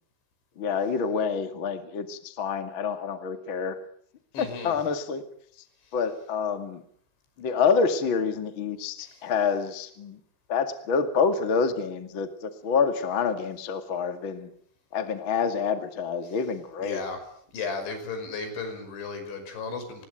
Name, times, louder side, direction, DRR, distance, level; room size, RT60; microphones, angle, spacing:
voice 1, 0.6-3.8 4.4-5.2 5.9-6.8 7.4-10.2 10.5-14.5 14.9-17.0, left 5 dB, 45° left, 8 dB, 1.6 m, -27 dB
voice 2, 4.3-4.8 9.0-9.2 16.8-17.2 17.5-20.1, left 4 dB, 60° left, 7 dB, 7.8 m, -34 dB
27.5 x 21.0 x 9.2 m, 0.65 s
omnidirectional pair, 5.9 m